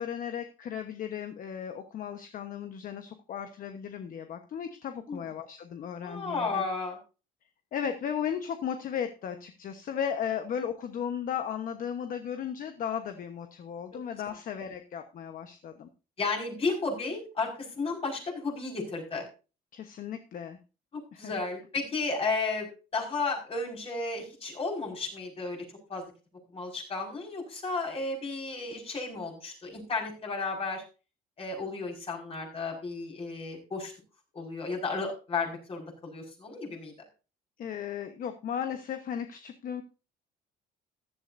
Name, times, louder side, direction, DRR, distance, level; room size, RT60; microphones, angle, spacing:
voice 1, 0.0-6.6 7.7-15.9 19.7-20.6 21.1-21.3 37.6-39.8, left 8 dB, 55° left, 8 dB, 1.2 m, -35 dB
voice 2, 6.0-7.0 16.2-19.3 20.9-26.1 26.5-30.8 31.4-33.9 34.3-36.9, left 3 dB, 35° left, 1 dB, 5.3 m, -33 dB
15.0 x 11.5 x 2.7 m, 0.32 s
cardioid pair, 110°, 17 cm